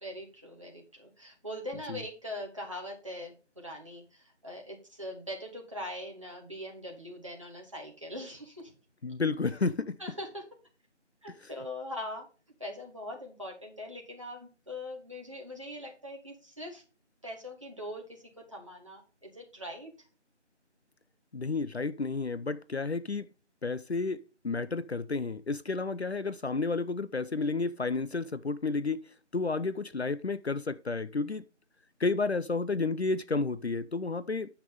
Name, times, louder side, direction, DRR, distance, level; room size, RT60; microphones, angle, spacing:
voice 1, 0.0-8.7 10.0-10.4 11.2-12.3 12.6-16.8 17.2-19.9, left 1 dB, 25° right, 1.5 m, -42 dB
voice 2, 9.0-10.0 11.4-11.5 21.3-23.3 23.6-29.0 29.3-31.4 32.0-34.5, left 3 dB, 65° left, 0.6 m, -31 dB
9.6 x 5.9 x 3.6 m
figure-of-eight pair, 180°, 36 cm